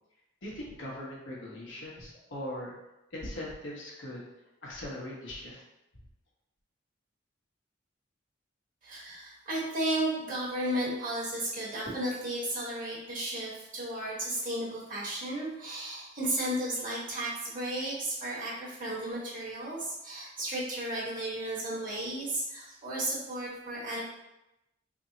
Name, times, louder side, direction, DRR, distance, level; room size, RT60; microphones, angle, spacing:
voice 1, 0.4-2.7 3.1-4.2 4.6-5.6, left 1 dB, 80° left, -5 dB, 1.1 m, -40 dB
voice 2, 8.8-24.1, right 1 dB, 45° right, -7 dB, 1.3 m, -34 dB
3.5 x 2.1 x 3.9 m, 0.92 s
head